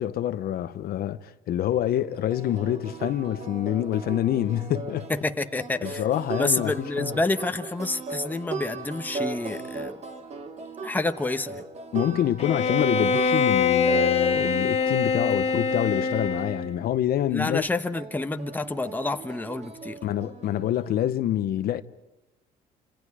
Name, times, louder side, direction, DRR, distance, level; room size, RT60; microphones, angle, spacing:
voice 1, 0.0-5.1 5.8-7.1 11.9-17.6 20.0-21.8, left 11 dB, 65° left, 0.9 m, -26 dB
sound 1, 2.0-16.5 17.9-21.0, right 3 dB, 40° right, 2.4 m, -38 dB
voice 2, 5.1-6.0 6.3-10.0 10.8-11.6 17.3-20.0, left 2 dB, 10° left, 1.1 m, -28 dB
Bowed string instrument, 12.4-16.8, left 5 dB, 40° left, 1.4 m, -24 dB
29.0 x 27.0 x 4.9 m
cardioid pair, 110°, 17 cm